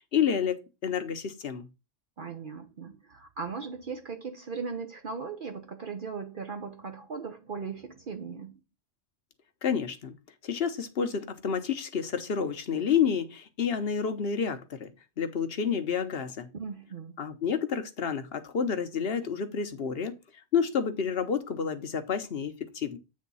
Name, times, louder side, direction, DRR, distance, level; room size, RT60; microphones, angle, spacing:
voice 1, 0.0-1.7 9.6-10.1 10.4-14.9 15.2-16.5 17.2-20.1 20.5-23.0, left 7 dB, 60° left, 1.2 m, -29 dB
voice 2, 2.2-8.6 16.5-17.1, right 5 dB, 55° right, 0.9 m, -38 dB
8.6 x 3.6 x 5.5 m
omnidirectional pair, 1.1 m